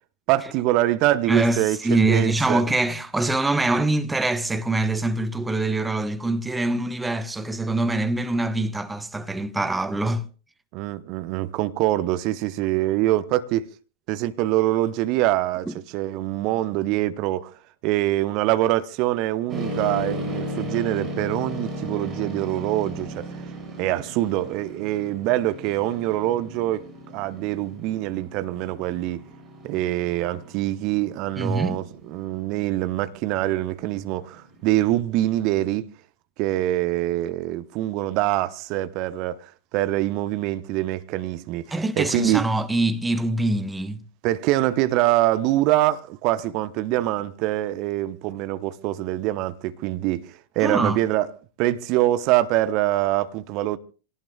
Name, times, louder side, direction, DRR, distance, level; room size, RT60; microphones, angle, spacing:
voice 1, 0.3-2.6 10.7-13.7 14.1-15.7 15.9-17.5 17.8-23.3 23.8-29.2 29.6-35.9 36.4-42.5 44.2-51.3 51.6-53.8, right 15 dB, 40° right, 1.0 m, -24 dB
voice 2, 1.3-10.3 15.7-15.8 31.4-31.8 41.7-44.0 50.6-51.0, right 2 dB, 10° right, 1.1 m, -24 dB
sound 1, 19.5-35.0, equal, 25° right, 6.1 m, -36 dB
27.0 x 18.0 x 2.4 m
figure-of-eight pair, 90°, 0 cm